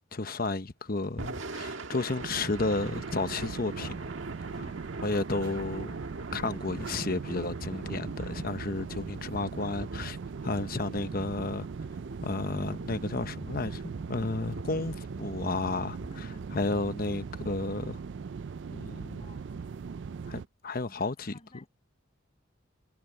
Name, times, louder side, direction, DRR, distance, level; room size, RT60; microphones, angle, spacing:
voice 1, 0.0-3.9 5.0-6.0 6.3-10.2 10.4-11.7 12.2-13.8 14.1-16.0 16.5-18.0 18.7-19.3 20.3-21.3, left 3 dB, 50° left, 1.0 m, -32 dB
Thunder / Rain, 1.0-17.3, right 2 dB, 80° right, 1.7 m, -43 dB
sound 1, 2.2-20.5, right 5 dB, 65° right, 0.4 m, -40 dB
voice 2, 4.4-5.0 16.0-16.7 19.2-19.5 20.8-21.7, left 1 dB, 30° left, 7.2 m, -55 dB
head